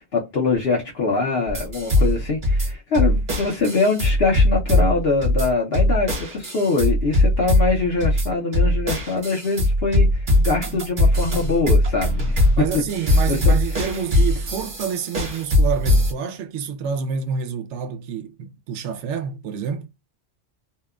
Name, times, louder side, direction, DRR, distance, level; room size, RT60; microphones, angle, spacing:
voice 1, 0.0-12.4 13.3-13.5, left 3 dB, 65° left, 1.0 m, -23 dB
sound 1, 1.5-16.1, left 1 dB, 45° right, 1.1 m, -20 dB
voice 2, 12.6-19.9, right 7 dB, 90° right, 0.9 m, -28 dB
2.8 x 2.1 x 2.3 m
omnidirectional pair, 1.2 m